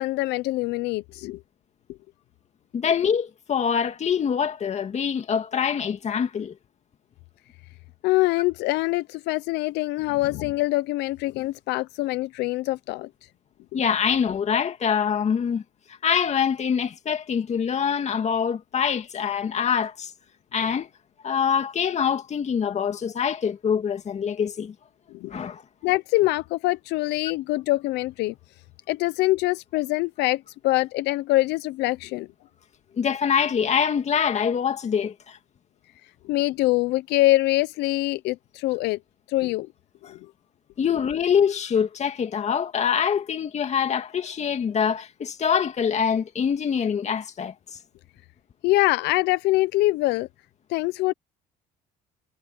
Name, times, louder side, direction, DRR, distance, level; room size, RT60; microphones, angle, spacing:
voice 1, 0.0-1.4 8.0-13.1 13.7-13.8 25.1-25.3 25.8-28.3 28.9-32.3 36.2-39.0 39.3-39.7 40.1-40.2 48.6-50.3 50.7-51.1, left 18 dB, 85° left, 0.6 m, -24 dB
voice 2, 2.7-6.5 13.7-15.6 16.0-20.1 20.5-20.9 21.2-24.7 25.3-25.6 33.0-35.4 40.0-40.1 40.8-47.5, left 7 dB, 40° left, 2.3 m, -24 dB
cardioid pair, 110°, 17 cm